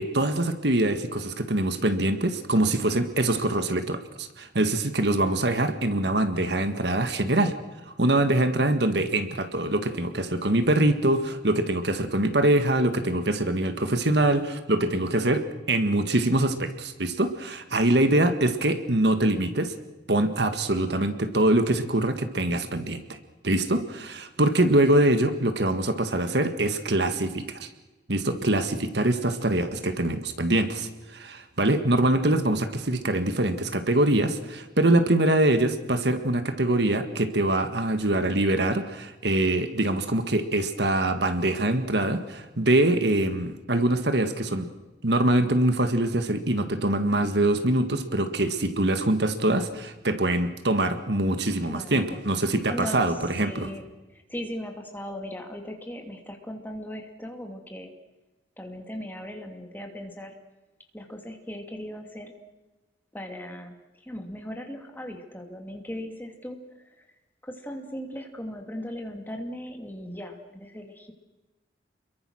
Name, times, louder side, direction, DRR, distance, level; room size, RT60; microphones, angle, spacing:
voice 1, 0.0-7.5 8.0-19.7 20.1-23.2 23.4-27.7 28.1-44.7 45.0-53.7, right 1 dB, 60° right, 9 dB, 1.8 m, -24 dB
voice 2, 51.6-52.3 52.7-57.9 58.6-60.3 60.9-62.3 63.1-63.7 64.0-67.0 67.4-71.1, equal, 10° left, 3 dB, 2.6 m, -38 dB
29.5 x 22.5 x 6.4 m, 1.1 s
head